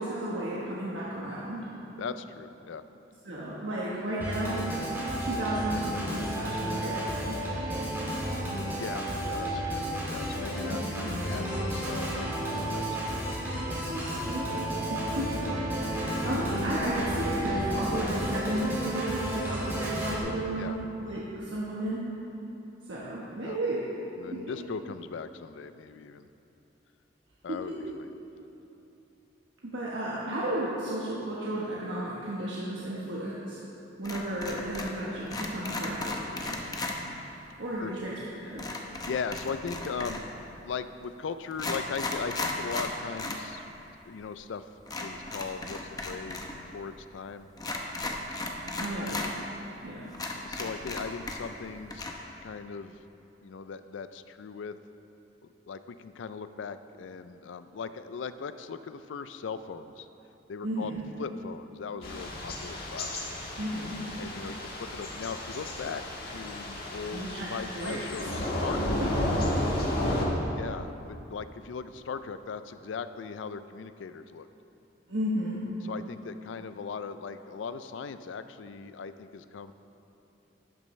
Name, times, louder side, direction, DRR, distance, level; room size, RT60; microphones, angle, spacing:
voice 1, 0.0-1.7 3.2-4.7 5.2-7.4 8.0-8.1 10.7-11.0 13.9-22.1 22.9-23.8 24.3-24.5 27.5-27.6 29.6-33.6 34.0-36.6 37.6-38.1 38.4-38.6 48.8-49.2 49.8-50.0 60.6-61.0 63.6-64.0 67.1-67.5 67.7-68.0 69.0-69.1 75.1-75.6, right 1 dB, 75° right, -7 dB, 1.2 m, -33 dB
voice 2, 2.0-2.8 8.8-13.3 20.6-20.8 23.4-23.6 24.2-26.3 27.4-28.1 37.8-37.9 39.0-40.2 40.6-43.6 44.1-44.6 45.0-47.5 48.9-49.2 50.4-52.0 52.4-53.0 53.4-54.8 55.4-60.1 60.5-63.2 64.2-69.0 70.5-74.5 75.8-79.7, left 5 dB, 85° left, 12 dB, 0.4 m, -39 dB
Organ, 4.2-20.2, right 1 dB, 10° right, 2.1 m, -32 dB
sound 1, 34.0-35.0 35.3-37.0 38.6-40.3 41.0-41.1 41.5-43.4 43.7-43.8 44.9-46.5 46.8-46.9 47.6-49.3 49.8-49.9 50.1-51.6 51.9-52.1, left 2 dB, 20° left, 0.7 m, -35 dB
Thunder / Rain, 62.0-70.3, left 1 dB, 55° left, 1.4 m, -32 dB
12.0 x 8.7 x 3.2 m, 2.9 s
head